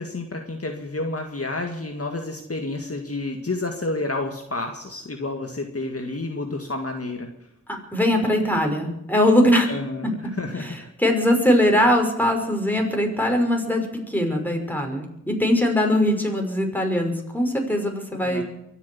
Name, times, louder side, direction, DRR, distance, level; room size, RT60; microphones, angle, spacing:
voice 1, 0.0-7.3 9.7-10.9 18.2-18.4, left 2 dB, 50° left, 3 dB, 2.0 m, -30 dB
voice 2, 7.9-9.7 11.0-18.4, left 1 dB, 5° left, 2 dB, 5.7 m, -21 dB
24.0 x 8.4 x 7.1 m, 0.81 s
cardioid pair, 45°, 31 cm